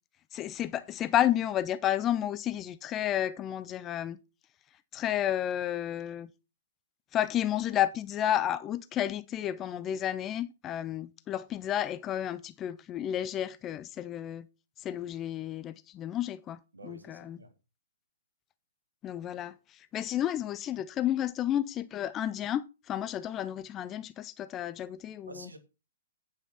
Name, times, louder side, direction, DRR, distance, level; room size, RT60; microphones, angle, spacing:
voice 1, 0.3-4.2 4.9-6.3 7.1-14.5 14.8-17.4 19.0-25.5, left 11 dB, 20° left, 0.6 m, -31 dB
voice 2, 16.7-17.5 25.3-25.6, right 2 dB, 75° right, 1.9 m, -48 dB
9.4 x 5.8 x 5.7 m
figure-of-eight pair, 115°, 0 cm